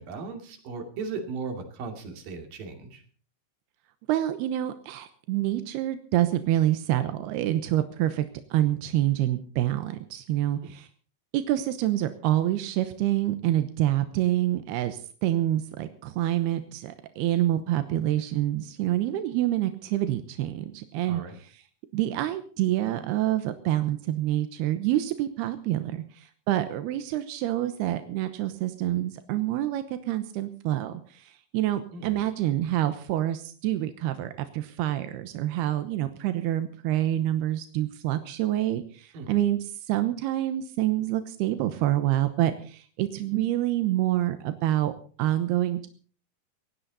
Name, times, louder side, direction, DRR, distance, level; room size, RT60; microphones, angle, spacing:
voice 1, 0.0-3.0 10.6-10.7 21.1-21.4 31.9-32.2 39.1-39.4, right 4 dB, 60° right, 5 dB, 4.3 m, -37 dB
voice 2, 4.1-8.3 8.5-10.9 11.3-21.5 21.9-39.6 39.9-44.9 45.2-45.9, right 13 dB, 90° right, 10 dB, 3.0 m, -27 dB
19.5 x 16.5 x 4.1 m, 0.42 s
omnidirectional pair, 4.5 m